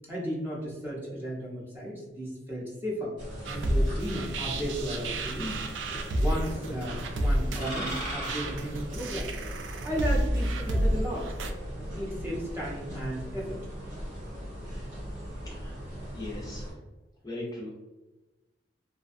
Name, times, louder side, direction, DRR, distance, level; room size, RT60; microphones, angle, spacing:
voice 1, 0.1-3.2 3.5-5.7 6.2-9.3 9.8-11.3 11.8-13.6, equal, 10° right, -5 dB, 0.7 m, -35 dB
sound 1, 3.2-16.7, equal, 45° right, 1.0 m, -37 dB
sound 2, 3.4-11.5, right 1 dB, 80° right, 0.4 m, -31 dB
voice 2, 16.1-16.6 17.2-17.8, left 1 dB, 20° left, -5 dB, 0.5 m, -38 dB
2.5 x 2.2 x 2.4 m, 1.1 s
head